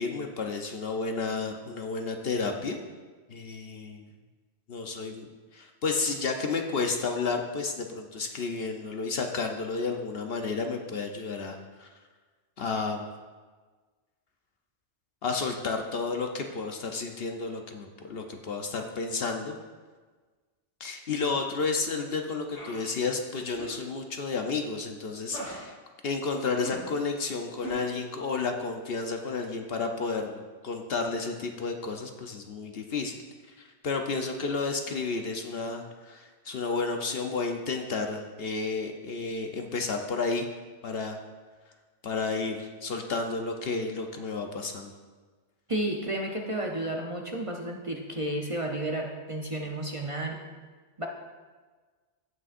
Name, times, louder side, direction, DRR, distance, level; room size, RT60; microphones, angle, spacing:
voice 1, 0.0-2.8 3.3-4.0 4.7-5.3 5.5-11.9 12.6-13.1 15.2-19.5 20.8-25.7 26.0-33.2 33.6-40.5 40.8-41.2 42.0-44.9, left 4 dB, 55° left, 4 dB, 0.9 m, -31 dB
sound 1, 22.5-22.7 23.5-23.8 25.3-25.5 26.6-26.8 27.6-27.7, right 1 dB, 80° left, 3.1 m, -39 dB
voice 2, 45.7-50.4 51.0-51.1, right 1 dB, 30° right, 0 dB, 0.7 m, -32 dB
17.0 x 6.2 x 2.5 m, 1.4 s
omnidirectional pair, 1.2 m